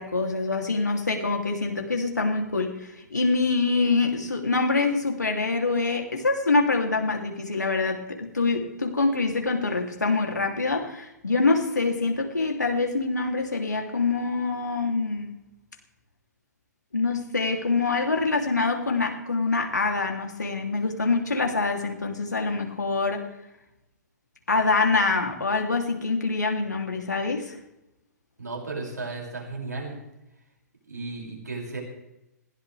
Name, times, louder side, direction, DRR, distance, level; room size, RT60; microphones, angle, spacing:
voice 1, 0.0-15.3 16.9-23.2 24.5-27.5, left 3 dB, 75° left, 2 dB, 3.1 m, -25 dB
voice 2, 28.4-30.0 30.9-31.8, right 3 dB, 75° right, -2 dB, 6.5 m, -34 dB
20.5 x 17.0 x 3.5 m, 0.91 s
figure-of-eight pair, 115°, 9 cm